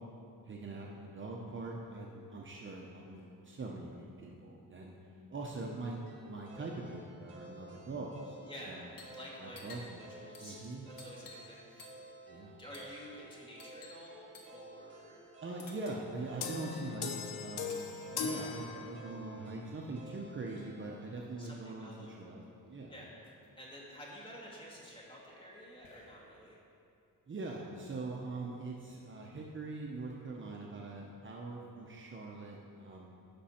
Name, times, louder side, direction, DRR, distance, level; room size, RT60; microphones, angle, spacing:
voice 1, 0.4-4.9 5.3-8.4 8.7-8.8 9.4-9.8 10.4-10.8 12.3-12.6 15.4-17.8 18.1-22.9 27.3-33.1, right 3 dB, 30° right, -2 dB, 0.8 m, -43 dB
sound 1, 6.1-22.2, right 2 dB, 65° right, 2.8 m, -54 dB
voice 2, 8.4-8.8 9.1-12.0 12.6-15.2 17.5-17.7 21.4-22.2 22.9-23.1 23.6-26.6, equal, 15° left, -5 dB, 2.2 m, -51 dB
sound 2, 8.9-9.2 9.5-11.5 11.8-12.2 12.7-13.0 13.6-14.0 14.3-14.6 15.6-17.9 18.9-20.0 21.2-21.3 21.6-22.2 22.7-22.8 23.0-23.5 24.0-26.5, left 3 dB, 60° left, 1.6 m, -56 dB
sound 3, 16.4-19.4, left 6 dB, 90° left, 0.8 m, -39 dB
15.5 x 6.1 x 4.4 m, 2.6 s
wide cardioid pair, 145°, 37 cm